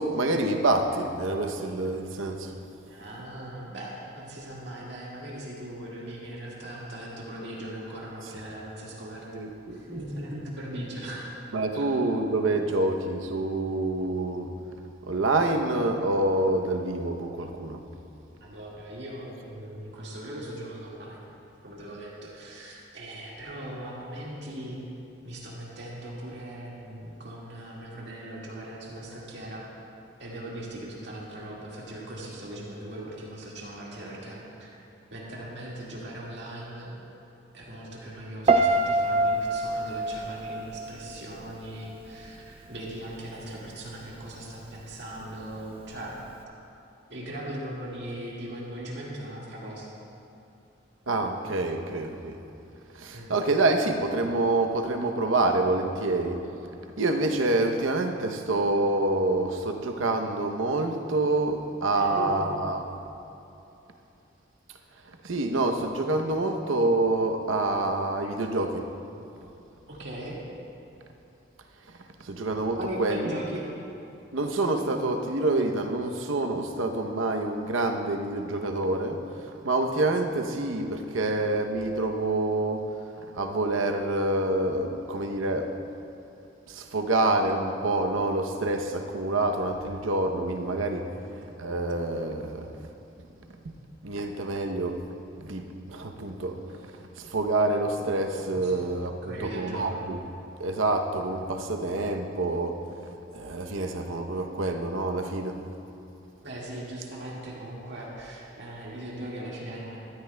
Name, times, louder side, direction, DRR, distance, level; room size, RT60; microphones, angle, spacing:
voice 1, 0.0-2.5 9.3-10.0 11.5-14.5 15.0-17.8 51.1-52.4 52.9-56.4 57.0-62.9 65.2-68.9 72.2-73.3 74.3-79.2 79.4-82.9 83.3-85.7 86.7-91.1 91.6-92.9 94.0-95.0 95.4-100.2 100.6-102.8 103.1-105.6, right 2 dB, 85° right, 5 dB, 0.8 m, -27 dB
voice 2, 2.9-9.2 9.7-11.4 11.7-11.9 12.7-12.8 18.4-21.2 21.6-24.8 25.2-29.6 30.2-34.8 35.1-36.9 37.5-46.1 47.1-49.9 53.1-53.3 61.9-62.6 69.9-70.4 72.8-73.6 91.0-91.3 98.5-98.8 99.2-99.9 106.4-110.0, right 1 dB, 60° right, -5 dB, 1.8 m, -39 dB
Piano, 38.5-41.6 41.8-42.3, right 2 dB, 30° right, 0.3 m, -25 dB
14.0 x 13.0 x 2.2 m, 2.8 s
head